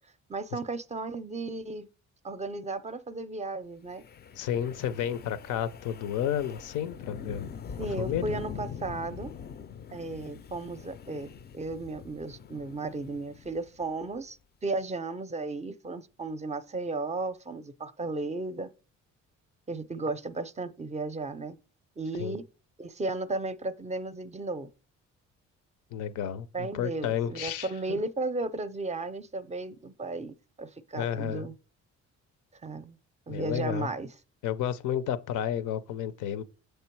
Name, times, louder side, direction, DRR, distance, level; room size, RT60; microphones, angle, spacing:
voice 1, 0.3-1.9 2.2-4.0 7.8-9.3 9.9-14.4 14.6-18.7 19.7-21.6 22.0-22.4 22.8-24.7 26.5-31.5 32.6-33.0 33.3-34.1, right 3 dB, 25° right, 0.5 m, -34 dB
Wind, 3.9-14.2, left 7 dB, 35° left, 0.4 m, -43 dB
voice 2, 4.4-7.5 8.0-8.3 22.2-22.4 25.9-28.0 30.9-31.5 33.3-33.9 34.4-36.4, left 10 dB, 85° left, 0.6 m, -31 dB
6.7 x 3.2 x 4.5 m
cardioid pair, 90°, 30 cm